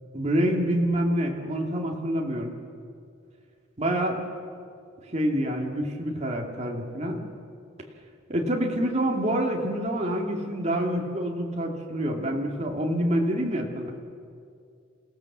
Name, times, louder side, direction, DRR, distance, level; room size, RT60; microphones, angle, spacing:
voice 1, 0.1-2.5 3.8-4.2 5.1-7.2 8.3-13.9, right 1 dB, 35° right, 0 dB, 2.4 m, -27 dB
28.0 x 16.5 x 7.4 m, 2.4 s
head